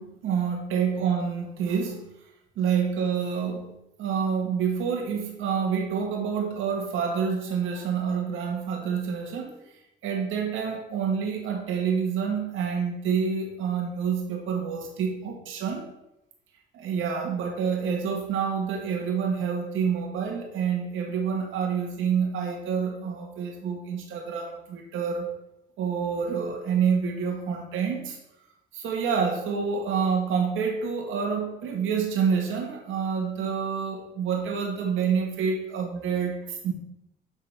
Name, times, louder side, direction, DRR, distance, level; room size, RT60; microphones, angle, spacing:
voice 1, 0.0-2.0 2.6-3.7 4.0-9.5 10.0-15.8 16.7-25.3 25.8-28.2 28.7-36.7, right 6 dB, 85° right, 1 dB, 1.7 m, -28 dB
10.5 x 4.0 x 4.4 m, 0.87 s
cardioid pair, 90°, 20 cm